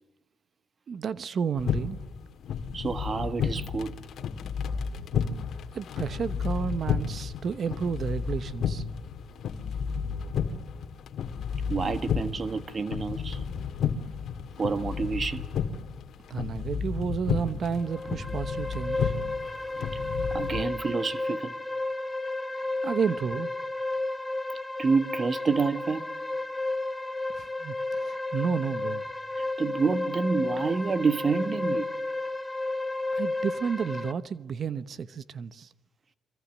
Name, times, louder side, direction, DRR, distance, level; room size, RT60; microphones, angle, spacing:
voice 1, 0.9-2.0 5.7-8.8 16.3-19.1 22.8-23.5 27.3-29.0 33.1-35.7, right 6 dB, 55° right, 1.0 m, -31 dB
sound 1, 1.6-20.6, left 6 dB, 65° left, 1.9 m, -32 dB
voice 2, 2.7-3.9 11.7-13.4 14.6-15.4 20.3-21.5 24.8-26.1 29.4-31.9, right 4 dB, 40° right, 1.4 m, -28 dB
sound 2, 17.8-34.1, left 2 dB, 10° left, 1.6 m, -32 dB
29.0 x 23.5 x 7.5 m
cardioid pair, 90°, 0 cm